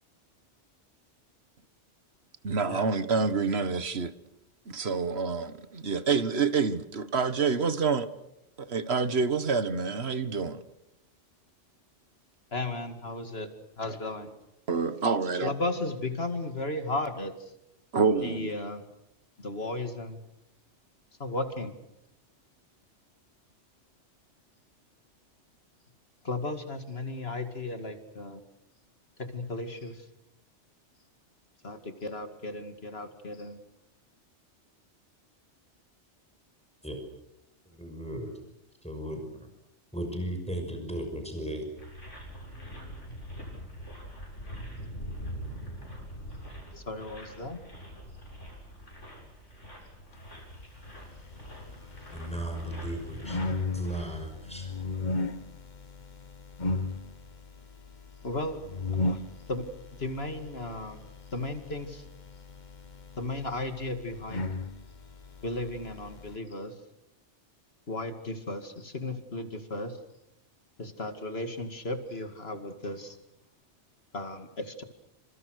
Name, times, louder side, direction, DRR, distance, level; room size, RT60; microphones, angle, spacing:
voice 1, 2.4-4.1 4.7-8.1 8.6-10.6 14.7-15.5 17.9-18.5, right 5 dB, 60° right, 1.7 m, -27 dB
voice 2, 12.5-13.5 13.8-14.3 15.4-17.5 18.2-18.8 19.4-20.2 21.2-21.7 26.2-28.4 29.2-30.1 31.6-33.6 46.8-47.6 58.2-58.6 59.0-59.2 59.5-59.6 60.0-61.0 61.3-62.0 63.2-64.5 65.4-66.7 67.9-70.0 70.8-73.2 74.1-74.8, left 2 dB, 60° left, 2.5 m, -35 dB
voice 3, 37.7-38.3 38.8-39.5 39.9-41.7 52.1-53.4 53.7-54.7, right 1 dB, 5° left, 5.9 m, -36 dB
sound 1, 41.8-54.1, equal, 85° left, 8.3 m, -44 dB
sound 2, 50.9-66.4, left 3 dB, 40° left, 1.3 m, -37 dB
28.5 x 26.5 x 6.5 m
omnidirectional pair, 1.2 m